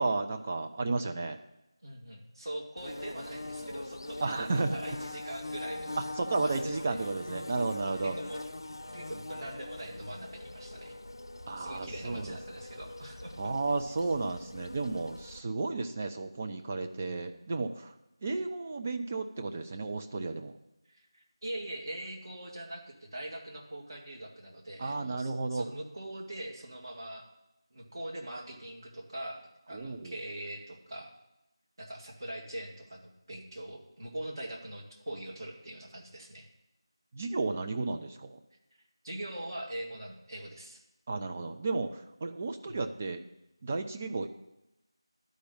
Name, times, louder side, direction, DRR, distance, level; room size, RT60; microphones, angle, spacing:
voice 1, 0.0-1.4 4.2-4.8 6.0-8.2 11.5-12.4 13.4-17.9 18.2-20.5 24.8-25.7 29.7-30.1 37.1-38.4 41.1-43.2 43.6-44.4, right 3 dB, 20° right, 5 dB, 0.5 m, -33 dB
voice 2, 1.8-4.4 4.7-5.9 6.4-7.0 8.0-8.4 8.7-10.9 11.6-13.5 20.9-27.2 27.7-29.4 29.7-31.1 31.8-36.5 39.0-40.8 42.7-42.9, right 1 dB, 50° right, 0 dB, 2.0 m, -42 dB
Bird / Buzz, 2.8-15.4, left 2 dB, 55° left, 0.7 m, -42 dB
11.5 x 5.2 x 8.5 m, 0.92 s
figure-of-eight pair, 170°, 3 cm